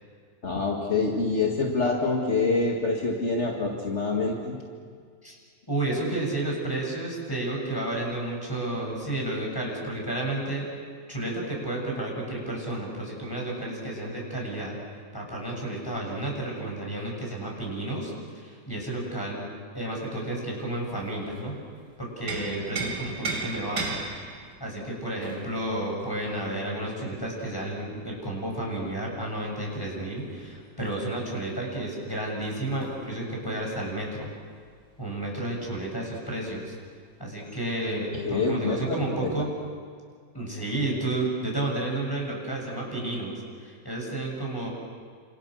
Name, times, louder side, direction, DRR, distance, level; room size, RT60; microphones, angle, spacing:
voice 1, 0.4-4.6 38.2-39.3, left 3 dB, 30° left, 0 dB, 1.4 m, -26 dB
voice 2, 5.7-10.7 11.1-14.8 15.1-19.4 19.7-21.5 22.0-23.9 24.6-34.3 35.0-36.7 37.2-39.5 40.3-44.7, right 1 dB, 5° left, -1 dB, 7.1 m, -31 dB
sound 1, 20.9-21.7 22.0-27.5 29.4-35.2 35.5-35.6 36.0-36.7 37.5-37.6, right 3 dB, 30° right, 2.3 m, -38 dB
29.5 x 27.5 x 6.5 m, 2.1 s
omnidirectional pair, 4.2 m